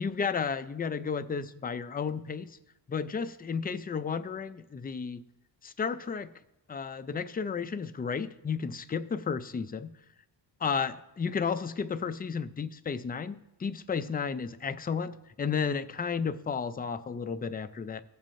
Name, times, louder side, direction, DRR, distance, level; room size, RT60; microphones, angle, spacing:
voice 1, 0.0-2.5 2.9-5.2 5.6-6.3 6.7-9.9 10.6-18.0, left 6 dB, 20° left, 12 dB, 0.4 m, -33 dB
17.0 x 7.4 x 2.6 m, 0.90 s
wide cardioid pair, 110°, 43 cm